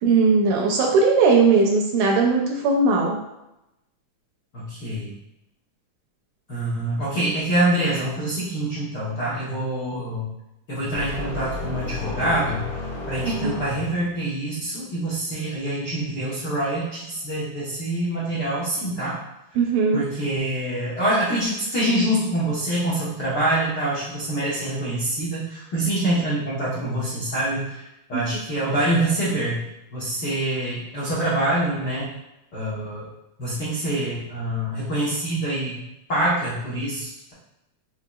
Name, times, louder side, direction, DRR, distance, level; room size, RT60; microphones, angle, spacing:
voice 1, 0.0-3.2 13.2-13.5 19.6-20.0 28.1-28.2, right 4 dB, 75° right, 0 dB, 1.9 m, -19 dB
voice 2, 4.5-5.1 6.5-10.3 10.7-12.7 13.1-19.2 19.9-27.8 28.1-29.6 29.9-32.1 32.5-33.1 33.4-35.8 36.1-37.3, right 1 dB, 80° left, -9 dB, 0.9 m, -25 dB
sound 1, 10.9-14.2, left 3 dB, 55° left, 1.0 m, -32 dB
6.7 x 3.1 x 2.3 m, 0.89 s
omnidirectional pair, 3.7 m